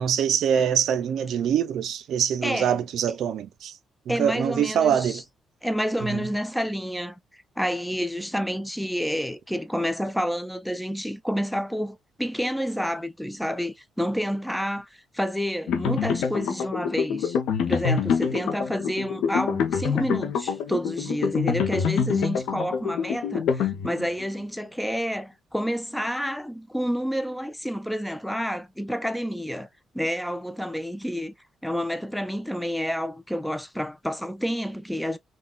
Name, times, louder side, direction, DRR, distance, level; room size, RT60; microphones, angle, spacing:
voice 1, 0.0-3.7 4.1-5.2 6.1-6.2, right 8 dB, 75° right, 0.4 m, -24 dB
voice 2, 2.4-2.8 4.1-5.2 5.6-17.4 17.7-29.7 29.9-31.3 31.6-35.2, equal, ahead, 0.4 m, -29 dB
sound 1, 15.7-24.2, left 7 dB, 85° left, 0.6 m, -26 dB
3.7 x 2.2 x 2.2 m
cardioid pair, 90°, 0 cm